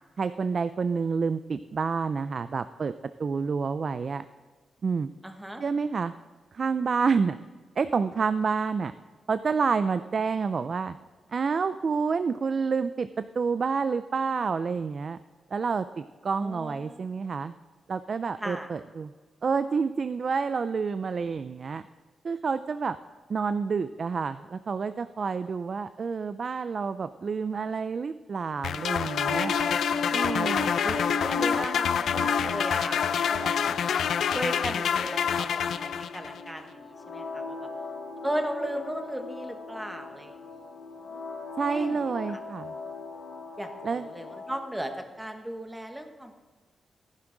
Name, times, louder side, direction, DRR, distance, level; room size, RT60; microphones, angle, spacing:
voice 1, 0.2-2.9 3.2-4.2 4.8-5.1 5.6-6.1 6.5-7.4 7.8-8.9 9.3-11.0 11.3-15.2 15.5-17.5 17.9-19.1 19.4-21.8 22.2-23.0 23.3-29.6 30.1-30.7 41.6-42.7 43.8-44.1, right 5 dB, 40° right, 12 dB, 0.3 m, -28 dB
voice 2, 5.2-5.6 16.4-17.1 18.4-18.7 30.8-31.0 31.2-37.7 38.2-40.4 41.1-41.2 41.7-42.0 43.6-46.4, equal, 5° right, 6 dB, 1.0 m, -36 dB
sound 1, 28.6-36.4, left 8 dB, 85° left, 0.4 m, -27 dB
sound 2, 28.8-44.7, left 3 dB, 70° left, 2.0 m, -37 dB
14.5 x 10.5 x 3.8 m, 1.4 s
wide cardioid pair, 165°, 0 cm